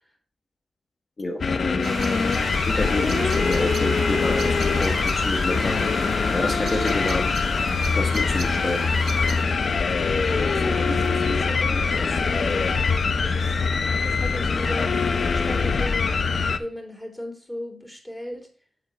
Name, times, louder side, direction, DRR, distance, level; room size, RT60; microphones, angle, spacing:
voice 1, 1.2-1.8 2.6-6.0 6.3-7.3 7.9-8.8, left 2 dB, 40° left, 2 dB, 1.4 m, -28 dB
sound 1, 1.4-16.6, left 4 dB, 60° left, 0.9 m, -23 dB
sound 2, 1.8-9.4, right 6 dB, 70° right, 0.6 m, -35 dB
voice 2, 10.1-13.6 14.0-16.3 16.6-18.5, equal, ahead, 1 dB, 3.5 m, -36 dB
7.7 x 7.5 x 4.8 m, 0.39 s
cardioid pair, 85°, 0 cm